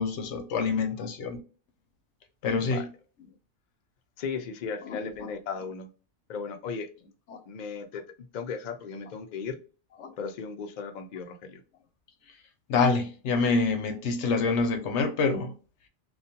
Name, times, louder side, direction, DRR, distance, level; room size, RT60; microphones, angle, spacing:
voice 1, 0.0-1.4 2.4-2.9 7.3-7.4 10.0-10.1 12.7-15.5, left 4 dB, 80° left, 0.9 m, -26 dB
voice 2, 4.2-5.9 6.3-6.9 7.5-9.6 10.2-11.6, left 5 dB, 60° left, 0.5 m, -36 dB
2.5 x 2.2 x 2.6 m
omnidirectional pair, 1.2 m